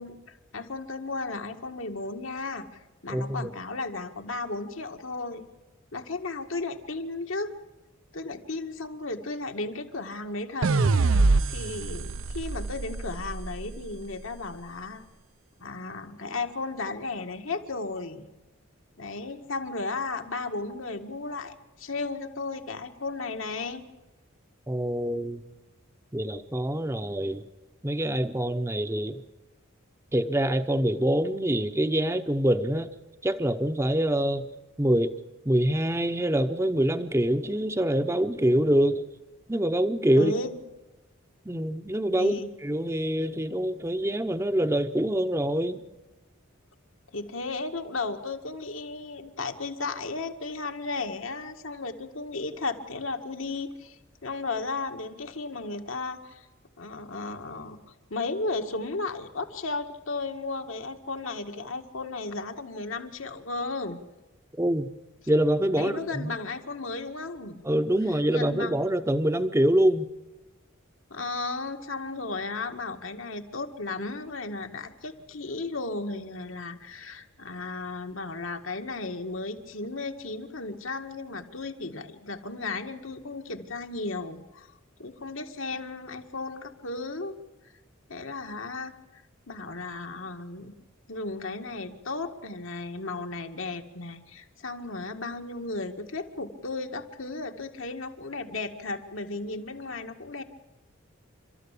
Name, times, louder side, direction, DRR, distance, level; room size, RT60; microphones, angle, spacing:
voice 1, 0.0-5.4 5.9-7.5 8.1-10.7 11.5-15.0 15.6-18.3 19.0-23.8 40.1-40.6 42.2-42.5 47.1-56.5 56.8-64.0 65.8-67.6 68.1-68.8 71.1-84.7 85.0-87.4 88.1-90.7 91.1-100.4, left 3 dB, 75° left, 5 dB, 2.0 m, -35 dB
voice 2, 3.1-3.5 24.7-25.4 26.1-27.4 27.8-29.2 30.1-32.9 33.2-34.4 34.8-35.1 35.5-39.0 39.5-40.3 41.5-42.3 42.6-45.8 64.5-64.9 65.3-66.3 67.6-70.1, right 1 dB, 15° right, 9 dB, 0.8 m, -25 dB
sound 1, 10.6-13.9, right 3 dB, 70° right, 0.7 m, -25 dB
29.5 x 13.5 x 8.4 m, 1.1 s
head